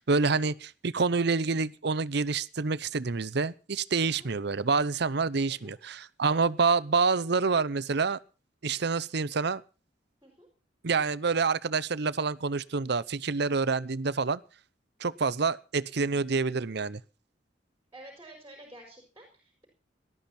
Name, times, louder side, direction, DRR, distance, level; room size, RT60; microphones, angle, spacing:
voice 1, 0.0-8.2 8.6-9.6 10.8-14.4 15.0-17.0, right 4 dB, 60° right, 18 dB, 0.7 m, -27 dB
voice 2, 17.9-19.6, right 1 dB, 15° right, 2 dB, 4.7 m, -50 dB
18.5 x 12.5 x 4.3 m, 0.34 s
head